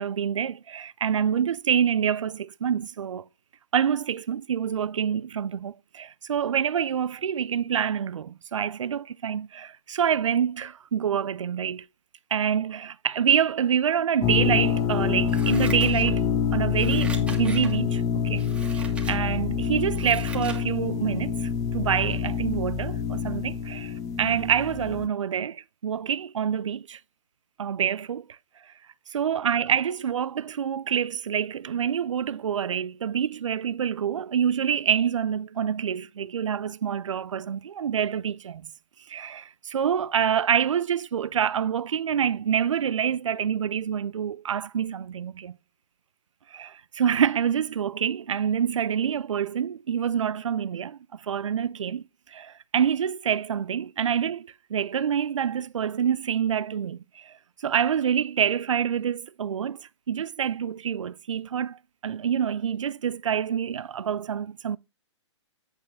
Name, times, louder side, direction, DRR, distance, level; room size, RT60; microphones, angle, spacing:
voice 1, 0.0-3.2 3.7-11.9 12.3-16.2 16.5-18.5 18.7-27.0 27.6-28.4 29.1-38.6 39.1-45.6 46.5-52.0 52.3-64.8, right 8 dB, 80° right, 0.4 m, -27 dB
sound 1, 14.2-25.1, left 7 dB, 20° left, 0.8 m, -26 dB
Scissors, 15.3-16.4 16.7-17.8 18.3-19.2 19.6-20.6 21.0-21.1, right 4 dB, 10° right, 1.8 m, -41 dB
8.9 x 6.7 x 3.5 m
hypercardioid pair, 130°, 16 cm